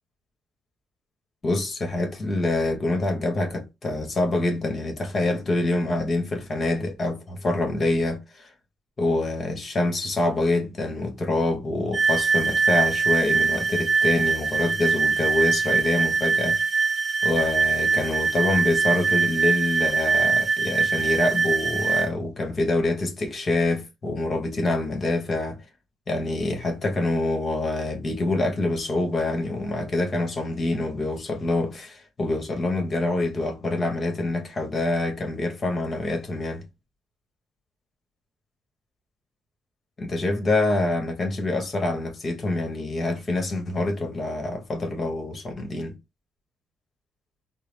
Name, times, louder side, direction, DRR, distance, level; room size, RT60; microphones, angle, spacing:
voice 1, 1.4-8.5 9.0-16.6 17.2-25.6 26.1-36.6 40.0-45.9, left 2 dB, 35° left, 1.3 m, -26 dB
sound 1, 11.9-22.1, right 5 dB, 35° right, 1.1 m, -23 dB
3.8 x 2.0 x 3.3 m
cardioid pair, 90°, 0 cm